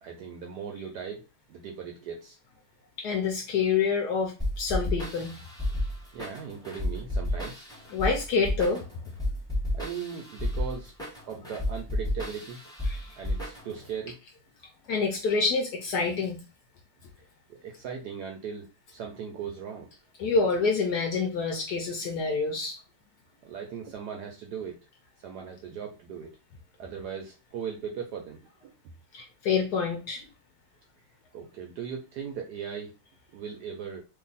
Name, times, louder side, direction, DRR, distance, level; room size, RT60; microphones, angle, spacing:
voice 1, 0.0-1.2 1.5-2.4 6.1-7.7 9.7-10.9 11.3-12.6 13.2-14.2 17.5-19.9 23.4-24.8 25.2-26.3 26.8-28.7 31.3-32.9 33.3-34.0, right 7 dB, 75° right, 2 dB, 0.9 m, -38 dB
voice 2, 3.0-5.3 7.9-8.8 12.9-13.1 14.9-16.4 20.2-22.8 29.1-30.3, left 4 dB, 70° left, 3 dB, 1.0 m, -27 dB
sound 1, 4.4-13.9, left 1 dB, 5° left, 0.6 m, -32 dB
3.0 x 2.6 x 3.9 m, 0.31 s
omnidirectional pair, 2.2 m